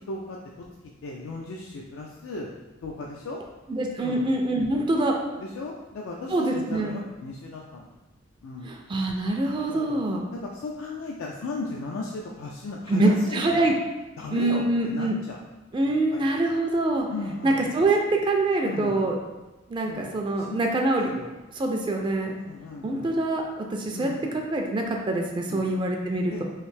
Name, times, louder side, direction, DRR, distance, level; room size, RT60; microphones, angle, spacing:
voice 1, 0.1-0.7 1.0-2.5 2.8-3.4 4.0-4.2 4.7-4.9 5.4-7.9 8.4-8.8 9.7-10.0 10.3-13.7 14.2-15.4 15.8-16.2 17.1-17.6 18.6-19.0 19.8-20.6 20.9-21.3 22.5-23.1 23.9-24.3 25.5-25.6 26.3-26.4, left 3 dB, 85° left, -2 dB, 0.4 m, -36 dB
voice 2, 3.7-5.2 6.3-6.9 8.6-10.2 12.9-13.7 14.3-15.1 15.7-17.1 17.4-19.2 19.7-21.1 21.6-22.3 22.8-26.4, right 2 dB, 25° right, 1 dB, 0.3 m, -25 dB
3.2 x 2.6 x 3.2 m, 1.1 s
head